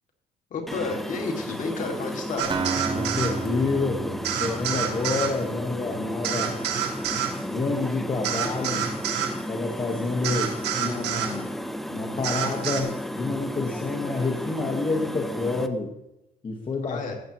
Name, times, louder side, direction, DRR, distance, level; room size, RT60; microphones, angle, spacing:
voice 1, 0.5-2.5 16.8-17.2, left 4 dB, 50° left, 2 dB, 2.4 m, -31 dB
sound 1, 0.7-15.7, equal, ahead, 0.6 m, -34 dB
sound 2, 2.4-3.3 4.2-5.3 6.2-7.3 8.2-9.3 10.2-11.3 12.2-12.8, right 9 dB, 80° right, 1.7 m, -28 dB
Acoustic guitar, 2.5-6.3, right 5 dB, 30° right, 0.9 m, -33 dB
voice 2, 2.9-6.6 7.4-8.9 9.5-10.5 10.8-11.5 11.9-15.9 16.4-17.0, left 3 dB, 30° left, 0 dB, 1.4 m, -28 dB
14.5 x 8.6 x 3.0 m, 0.88 s
cardioid pair, 110°, 17 cm